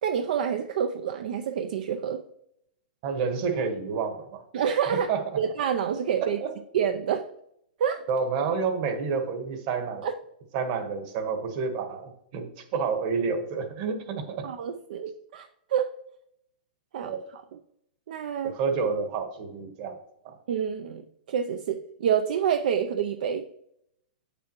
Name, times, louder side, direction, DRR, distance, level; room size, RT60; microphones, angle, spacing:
voice 1, 0.0-2.2 4.5-5.1 5.4-6.4 6.7-7.3 7.8-8.1 10.0-10.1 14.4-15.9 16.9-17.6 18.1-18.5 20.5-23.4, right 8 dB, 65° right, 8 dB, 0.5 m, -28 dB
voice 2, 3.0-4.4 4.9-5.2 6.2-6.5 8.1-10.0 10.5-14.5 17.0-17.2 18.4-20.0 20.2-20.4, right 5 dB, 45° right, 7 dB, 1.4 m, -29 dB
8.2 x 6.9 x 3.0 m, 0.76 s
hypercardioid pair, 140°, 5 cm